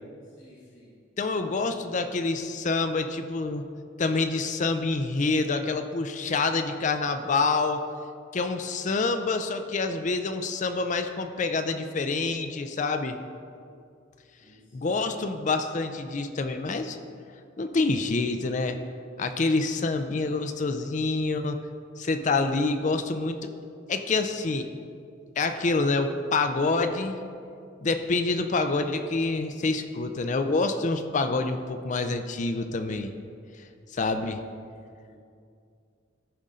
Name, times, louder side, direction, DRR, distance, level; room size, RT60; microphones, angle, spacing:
voice 1, 0.2-1.0 14.4-15.2 34.9-35.2, equal, 80° left, -7 dB, 2.3 m, -56 dB
voice 2, 1.2-3.6 4.0-7.8 8.3-13.2 14.7-17.0 17.6-18.8 19.2-21.6 22.0-23.5 23.9-24.7 25.4-27.2 27.8-33.1 33.9-34.4, left 3 dB, 40° left, 8 dB, 0.4 m, -27 dB
14.0 x 5.2 x 3.7 m, 2.3 s
head